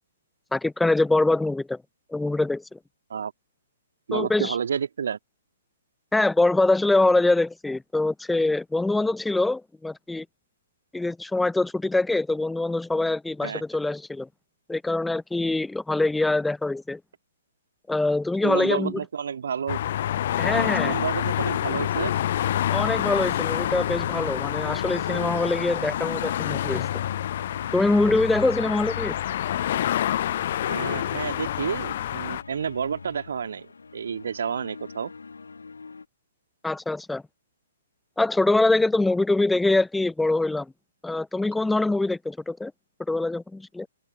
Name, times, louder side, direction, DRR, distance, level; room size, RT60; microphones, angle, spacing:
voice 1, 0.5-1.8 2.1-2.8 4.1-4.5 6.1-10.3 10.9-14.3 14.7-17.0 17.9-18.9 20.4-20.9 22.7-26.9 27.7-29.2 36.6-37.2 38.2-40.7 41.0-42.7 43.1-43.9, left 2 dB, 5° left, 0.4 m, -24 dB
voice 2, 4.1-5.2 13.4-13.6 18.4-19.8 20.8-22.1 30.7-35.1, right 7 dB, 55° right, 2.1 m, -30 dB
sound 1, 19.5-36.1, left 4 dB, 70° left, 1.7 m, -46 dB
sound 2, 19.7-32.4, left 11 dB, 45° left, 0.6 m, -27 dB
open air
figure-of-eight pair, 120°, 0 cm